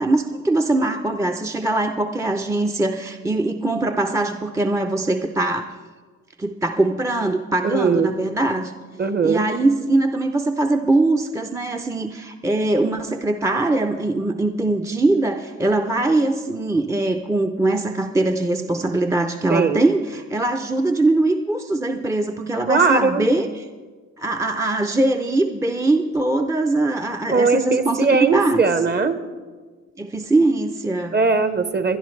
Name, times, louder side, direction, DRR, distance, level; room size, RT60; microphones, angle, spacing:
voice 1, 0.0-5.7 6.4-8.7 9.2-23.6 24.2-28.6 30.0-31.1, right 2 dB, 10° right, 5 dB, 0.6 m, -21 dB
voice 2, 7.6-8.1 9.0-9.4 19.5-19.8 22.7-23.3 27.3-29.2 31.1-32.0, right 4 dB, 35° right, 10 dB, 1.0 m, -19 dB
21.5 x 11.5 x 3.2 m, 1.4 s
cardioid pair, 90°, 30 cm